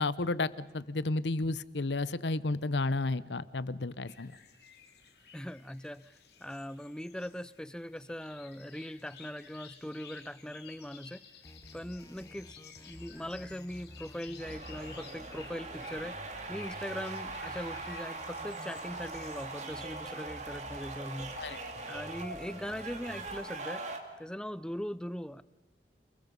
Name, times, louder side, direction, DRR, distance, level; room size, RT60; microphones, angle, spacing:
voice 1, 0.0-4.4 21.4-21.6, left 2 dB, 85° left, 17 dB, 0.9 m, -32 dB
sound 1, 4.1-19.7, left 6 dB, 65° left, 3.1 m, -55 dB
voice 2, 5.3-11.3 11.7-16.2 16.5-21.4 21.9-23.8 24.2-25.4, equal, 5° left, 16 dB, 0.6 m, -40 dB
sound 2, 11.4-23.4, equal, 20° left, 1.1 m, -51 dB
sound 3, 14.4-24.0, right 3 dB, 40° right, 2.5 m, -41 dB
29.0 x 21.0 x 5.4 m, 1.2 s
head